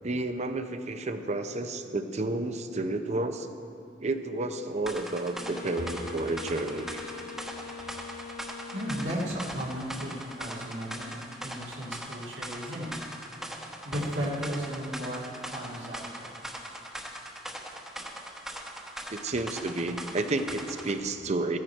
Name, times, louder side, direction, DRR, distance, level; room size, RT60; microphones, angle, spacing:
voice 1, 0.0-3.5 4.0-7.0 19.1-21.6, right 2 dB, 40° right, 8 dB, 0.7 m, -31 dB
sound 1, 4.9-21.0, right 1 dB, 5° right, 1.1 m, -40 dB
Wind instrument woodwind instrument, 5.3-9.6, left 6 dB, 50° left, 0.9 m, -43 dB
voice 2, 8.7-11.1 11.4-12.9 13.5-16.3, equal, 85° right, -6 dB, 2.1 m, -35 dB
15.0 x 10.5 x 4.5 m, 2.5 s
head